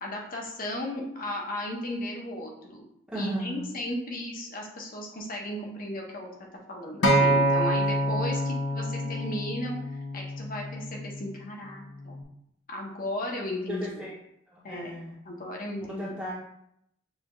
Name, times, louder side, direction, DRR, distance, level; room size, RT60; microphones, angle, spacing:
voice 1, 0.0-2.8 3.1-6.3 6.7-9.8 10.1-12.1 12.7-14.1 14.6-15.0 15.2-16.1, left 1 dB, 45° left, 0 dB, 0.9 m, -35 dB
voice 2, 3.1-3.7 8.1-8.2 13.7-14.1 14.5-15.1 16.0-16.3, equal, 5° right, -8 dB, 0.7 m, -35 dB
Acoustic guitar, 7.0-11.3 12.1-12.2, right 1 dB, 80° left, 0.6 m, -26 dB
6.6 x 2.4 x 3.0 m, 0.75 s
head